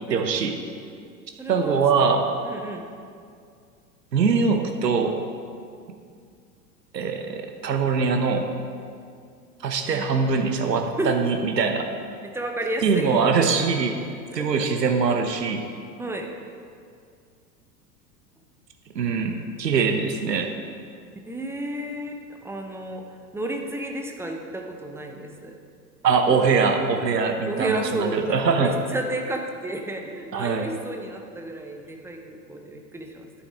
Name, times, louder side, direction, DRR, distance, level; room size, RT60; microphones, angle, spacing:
voice 1, 0.1-0.6 1.5-2.3 4.1-5.2 6.9-8.5 9.6-11.9 12.8-14.0 14.3-15.7 18.9-20.5 26.0-28.7 30.3-30.7, right 5 dB, 80° right, 5 dB, 1.0 m, -22 dB
voice 2, 1.4-1.8 2.4-2.8 9.9-10.1 11.0-11.1 12.3-13.1 14.3-14.7 16.0-16.3 21.2-23.0 23.3-25.5 27.4-33.5, right 1 dB, 5° right, 2 dB, 0.7 m, -32 dB
11.0 x 9.2 x 3.5 m, 2.3 s
figure-of-eight pair, 90°, 49 cm